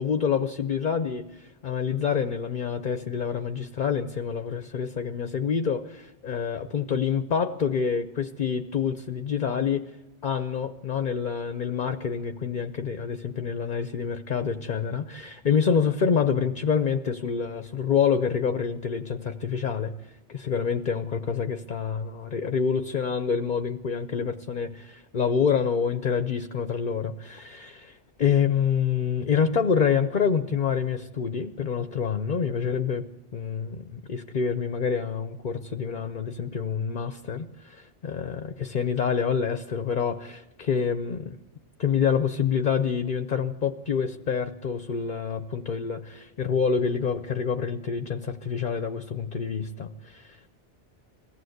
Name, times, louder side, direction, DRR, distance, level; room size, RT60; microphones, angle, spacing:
voice 1, 0.0-9.8 10.2-41.4 41.8-50.5, left 6 dB, 45° left, 9 dB, 0.8 m, -27 dB
22.0 x 15.5 x 7.9 m, 1.1 s
omnidirectional pair, 1.2 m